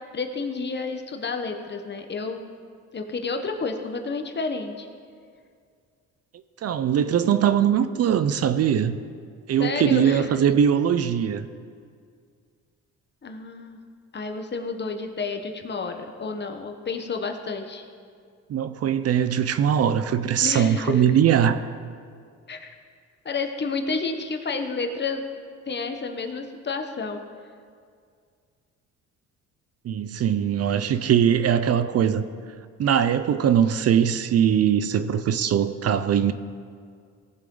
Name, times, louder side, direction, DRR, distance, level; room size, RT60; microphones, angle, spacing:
voice 1, 0.1-2.4 2.9-4.9 9.6-10.3 13.2-13.8 14.1-17.9 20.4-21.0 22.5-22.7 23.2-25.2 25.7-27.2, left 4 dB, 35° left, 5 dB, 1.2 m, -30 dB
voice 2, 6.6-9.0 9.5-11.5 18.5-21.6 29.8-32.2 32.8-36.3, right 9 dB, 55° right, 12 dB, 0.6 m, -21 dB
17.5 x 7.4 x 3.9 m, 2.1 s
cardioid pair, 90°, 30 cm